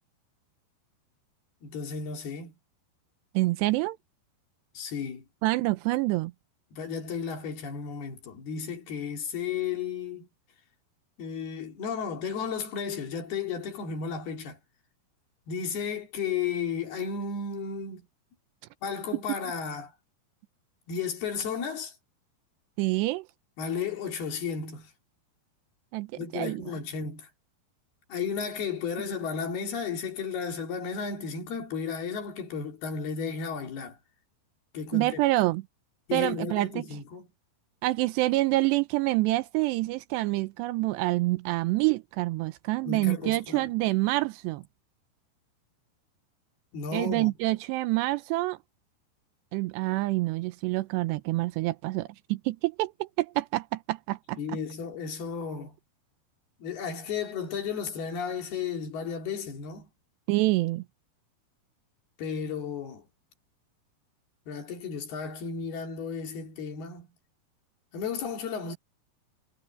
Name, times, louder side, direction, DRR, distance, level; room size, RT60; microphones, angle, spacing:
voice 1, 1.6-2.6 4.8-5.3 6.7-10.3 11.2-14.6 15.5-18.1 18.8-19.9 20.9-22.0 23.6-24.9 26.2-27.3 28.1-34.0 34.7-35.2 36.1-37.3 42.8-43.7 46.7-47.3 54.4-55.7 56.6-59.9 62.2-63.0 64.5-67.1 67.9-68.8, left 6 dB, 65° left, 5.2 m, -33 dB
voice 2, 3.3-4.0 5.4-6.3 22.8-23.3 25.9-26.1 26.3-26.6 34.9-35.6 36.1-36.8 37.8-44.6 46.9-48.6 49.5-54.6 60.3-60.8, right 19 dB, 85° right, 2.9 m, -27 dB
omnidirectional pair, 4.9 m